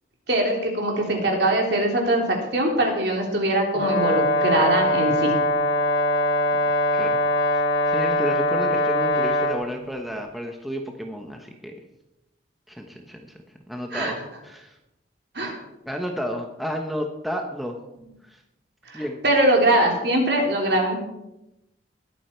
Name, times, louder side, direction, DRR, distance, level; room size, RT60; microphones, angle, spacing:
voice 1, 0.3-5.3 13.9-14.1 15.3-15.6 18.9-21.0, right 1 dB, 55° right, 0 dB, 3.4 m, -22 dB
Brass instrument, 3.7-9.6, left 1 dB, 80° left, 3.2 m, -22 dB
voice 2, 6.6-7.2 7.5-11.7 12.7-13.4 13.7-14.8 15.8-17.8 18.2-18.4 18.9-19.2, equal, ahead, 2 dB, 1.1 m, -32 dB
20.5 x 8.6 x 4.5 m, 0.89 s
head